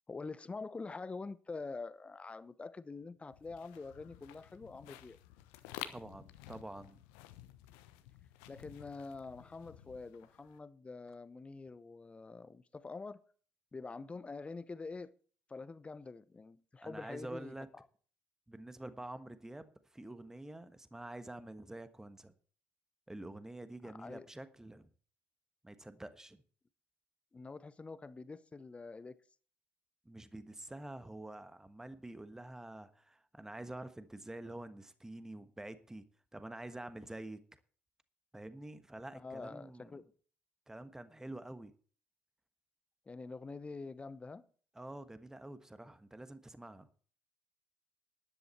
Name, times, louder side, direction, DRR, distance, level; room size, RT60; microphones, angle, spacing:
voice 1, 0.1-5.2 8.5-13.2 13.7-15.1 15.5-17.8 23.8-24.3 27.3-29.2 39.1-40.1 43.1-44.5, left 3 dB, 20° left, 0.9 m, -46 dB
sound 1, 3.3-10.6, left 13 dB, 65° left, 1.0 m, -52 dB
voice 2, 5.9-7.0 16.8-17.7 18.5-22.3 23.1-24.9 25.6-26.4 30.0-36.0 36.3-37.4 38.3-40.0 40.7-41.7 44.7-46.9, right 1 dB, 10° right, 1.3 m, -47 dB
13.5 x 11.0 x 4.4 m
figure-of-eight pair, 50°, 6 cm